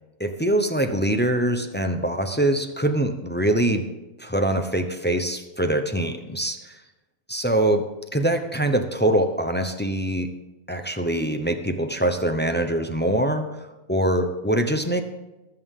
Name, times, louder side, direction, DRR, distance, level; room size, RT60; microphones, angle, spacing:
voice 1, 0.2-3.9 4.2-6.8 7.3-7.9 8.1-10.3 10.7-15.0, right 1 dB, 10° left, 6 dB, 0.6 m, -23 dB
20.0 x 8.2 x 3.7 m, 1.0 s
omnidirectional pair, 1.6 m